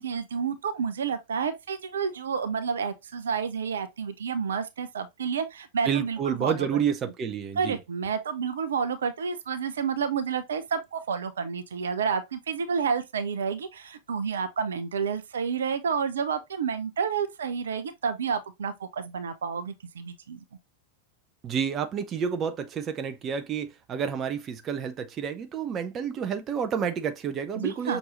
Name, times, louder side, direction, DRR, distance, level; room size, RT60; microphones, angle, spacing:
voice 1, 0.0-6.8 7.6-20.4 27.6-28.0, right 6 dB, 65° right, 0.6 m, -30 dB
voice 2, 5.8-7.8 21.4-28.0, right 7 dB, 30° right, 0.6 m, -29 dB
6.1 x 2.7 x 3.0 m
figure-of-eight pair, 90°, 0 cm